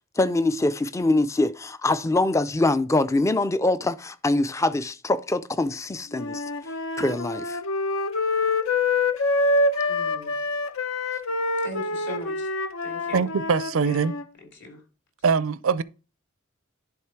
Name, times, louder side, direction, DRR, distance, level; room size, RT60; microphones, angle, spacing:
voice 1, 0.2-6.4 7.0-7.6, left 2 dB, 15° left, 0.4 m, -24 dB
Wind instrument woodwind instrument, 6.1-14.2, left 2 dB, 75° left, 0.7 m, -26 dB
voice 2, 9.9-10.4 11.6-12.5 12.8-13.2 13.8-14.1 14.5-14.8, left 1 dB, 55° left, 3.0 m, -39 dB
voice 3, 13.1-14.1 15.2-15.8, right 5 dB, 75° right, 0.5 m, -22 dB
10.5 x 3.7 x 4.6 m
head